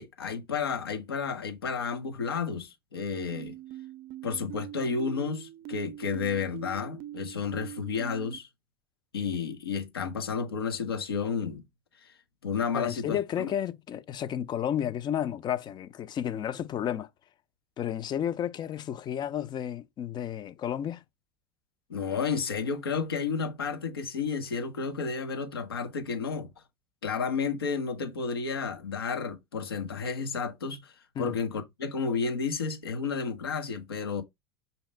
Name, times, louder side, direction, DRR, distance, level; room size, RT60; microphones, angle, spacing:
voice 1, 0.0-3.5 4.2-8.5 9.1-11.6 12.4-13.5 21.9-26.5 27.0-30.9 31.2-34.2, left 5 dB, 85° left, 1.0 m, -31 dB
sound 1, 3.3-8.4, right 13 dB, 60° right, 0.5 m, -43 dB
voice 2, 12.7-17.1 17.8-21.0 31.2-31.4, left 10 dB, 35° left, 0.5 m, -32 dB
5.5 x 2.8 x 3.2 m
hypercardioid pair, 80°, 12 cm